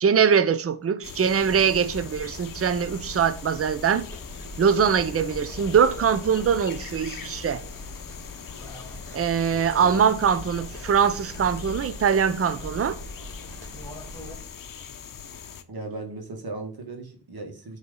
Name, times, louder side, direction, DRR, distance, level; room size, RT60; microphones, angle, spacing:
voice 1, 0.0-4.1 4.6-7.6 9.1-13.0, right 7 dB, 30° right, 0.7 m, -22 dB
sound 1, 1.0-15.6, left 7 dB, 45° left, 0.8 m, -42 dB
sound 2, 1.4-14.4, left 1 dB, 5° left, 2.4 m, -41 dB
voice 2, 9.5-10.0 15.7-17.8, right 2 dB, 50° right, 1.8 m, -37 dB
9.2 x 3.3 x 3.9 m
supercardioid pair, 45°, 47 cm